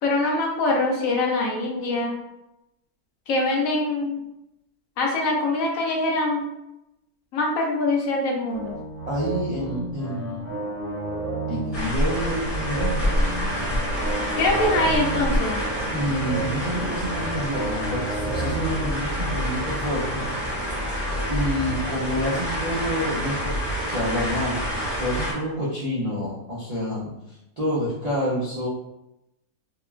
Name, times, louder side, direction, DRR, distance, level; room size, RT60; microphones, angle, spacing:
voice 1, 0.0-2.2 3.3-4.2 5.0-6.4 7.3-8.8 14.4-15.6, left 2 dB, 70° left, 0 dB, 1.0 m, -23 dB
sound 1, 8.5-22.5, right 2 dB, 80° right, 1.5 m, -33 dB
voice 2, 9.1-10.6 11.5-13.8 15.9-20.3 21.3-23.6 23.9-24.6 25.0-27.1 27.6-28.7, equal, 60° right, -7 dB, 0.4 m, -28 dB
sound 2, 11.7-25.3, equal, 20° left, 0.7 m, -27 dB
3.6 x 2.2 x 2.3 m, 0.88 s
omnidirectional pair, 1.6 m